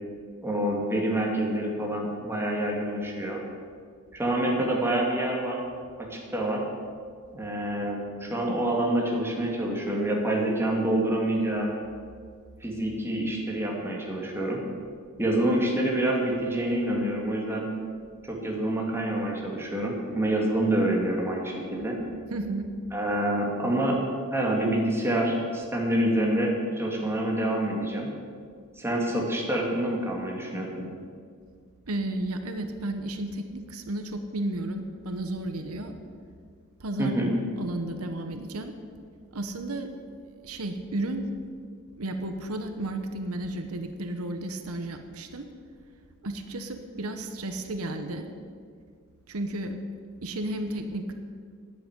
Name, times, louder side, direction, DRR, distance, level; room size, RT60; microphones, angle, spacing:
voice 1, 0.4-3.4 4.1-5.6 6.0-6.6 7.3-11.7 12.6-14.6 15.2-17.7 18.3-22.0 22.9-24.0 24.3-28.1 28.8-30.7 37.0-37.3, right 1 dB, 10° right, -2 dB, 2.2 m, -27 dB
voice 2, 22.3-22.7 31.9-35.9 36.8-37.3 37.6-38.7 39.3-39.9 40.4-41.3 42.0-45.5 46.2-48.2 49.3-49.8 50.2-51.1, right 1 dB, 90° right, 7 dB, 1.1 m, -33 dB
10.5 x 7.8 x 9.6 m, 2.1 s
head